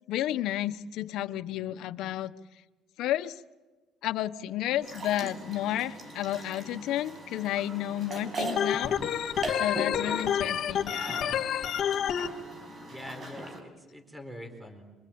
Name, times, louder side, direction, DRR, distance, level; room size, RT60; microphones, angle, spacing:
voice 1, 0.1-2.3 3.0-3.4 4.0-8.9 9.6-10.9, left 13 dB, 70° left, 11 dB, 1.0 m, -31 dB
sound 1, 4.8-13.6, right 1 dB, 35° right, 5.9 m, -40 dB
Organ, 8.6-12.3, left 9 dB, 50° left, 2.0 m, -29 dB
voice 2, 10.8-11.4 12.9-14.8, left 1 dB, 5° right, 7 dB, 4.2 m, -44 dB
26.0 x 25.0 x 8.8 m, 1.2 s
cardioid pair, 135°, 0 cm